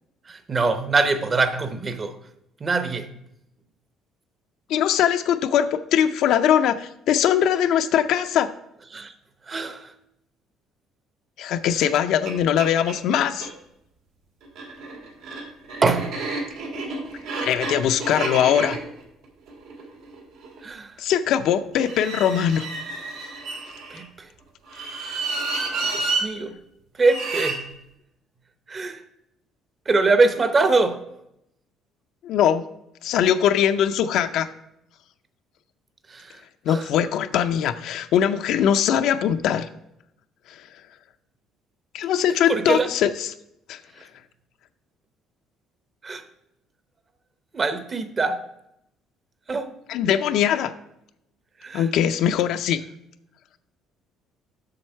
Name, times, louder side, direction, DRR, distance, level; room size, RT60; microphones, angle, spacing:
voice 1, 0.3-2.2 2.6-3.1 8.9-9.1 9.5-9.9 15.8-16.2 20.6-20.9 23.9-24.1 24.8-25.2 25.8-26.6 27.0-27.7 28.7-29.0 29.9-31.0 36.1-36.3 36.7-36.8 42.5-42.9 46.0-46.2 47.5-48.4 49.5-49.8 51.6-51.9, right 3 dB, 25° right, 0.7 m, -23 dB
voice 2, 4.7-8.5 11.4-13.5 17.4-18.8 21.0-22.7 32.2-32.6 33.0-34.5 36.7-39.7 41.9-43.3 43.7-43.8 49.9-50.7 51.7-52.8, left 9 dB, 70° left, 0.5 m, -21 dB
sound 1, 11.8-11.9 12.3-12.4 12.6-13.5 14.4-20.6 21.8-24.0 24.7-26.3 27.0-27.6, right 3 dB, 90° right, 2.2 m, -30 dB
7.7 x 6.3 x 4.4 m
cardioid pair, 125°, 0 cm